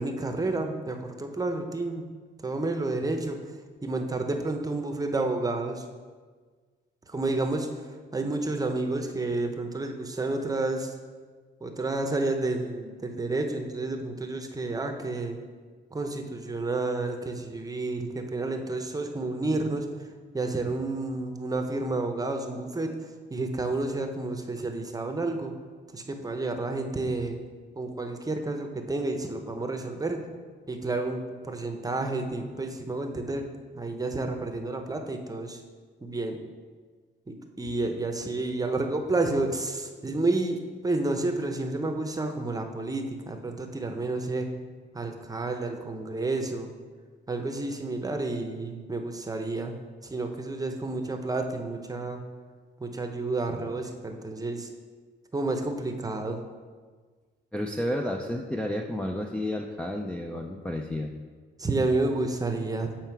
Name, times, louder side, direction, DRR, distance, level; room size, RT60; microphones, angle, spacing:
voice 1, 0.0-2.0 2.4-3.5 3.8-5.8 7.1-7.8 8.1-11.0 11.6-15.4 15.9-20.1 20.3-25.5 25.9-27.4 27.8-30.2 30.7-33.4 33.7-35.6 36.0-36.4 37.3-44.5 44.9-46.7 47.3-49.7 50.0-52.2 52.8-54.7 55.3-56.4 61.6-62.9, right 2 dB, 20° right, 5 dB, 0.8 m, -30 dB
voice 2, 57.5-61.1, left 1 dB, 5° left, 2 dB, 0.4 m, -31 dB
7.4 x 4.5 x 4.6 m, 1.5 s
cardioid pair, 90°, 20 cm